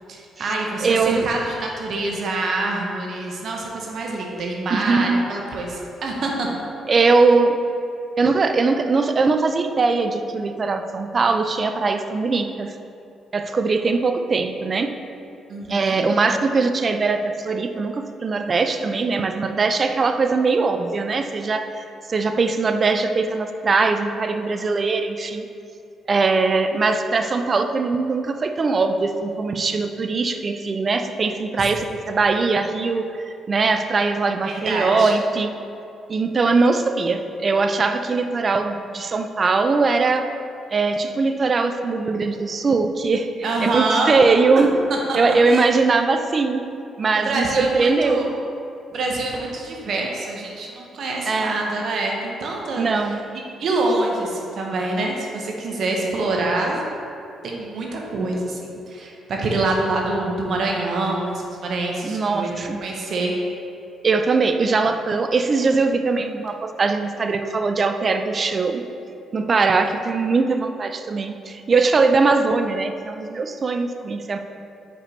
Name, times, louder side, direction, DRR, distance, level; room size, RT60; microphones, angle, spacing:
voice 1, 0.1-6.5 15.5-16.0 34.4-35.1 43.4-44.1 44.6-45.2 45.5-45.6 47.1-48.3 48.9-53.2 53.6-56.8 57.4-63.3, right 2 dB, 60° right, -1 dB, 0.9 m, -26 dB
voice 2, 0.8-1.2 4.7-5.2 6.9-7.6 8.2-12.7 13.3-14.9 15.7-25.5 26.1-35.5 36.1-40.3 40.7-43.3 43.6-44.7 45.2-46.7 47.0-48.2 51.3-51.6 52.8-53.2 62.0-62.8 64.0-68.8 69.3-74.4, right 4 dB, 40° right, 7 dB, 0.4 m, -21 dB
4.9 x 4.5 x 4.5 m, 2.6 s
cardioid pair, 90°, 0 cm